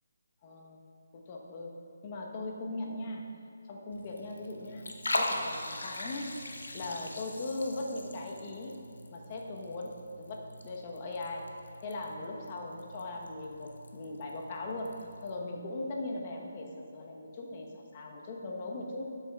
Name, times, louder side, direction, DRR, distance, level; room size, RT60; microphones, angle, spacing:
voice 1, 0.4-0.8 1.1-3.3 3.7-6.4 6.7-8.8 9.1-11.5 11.8-19.1, left 2 dB, 30° left, 0 dB, 1.0 m, -39 dB
Liquid, 3.9-15.3, left 1 dB, 85° left, 0.9 m, -41 dB
12.5 x 8.0 x 2.4 m, 2.4 s
figure-of-eight pair, 160°, 0 cm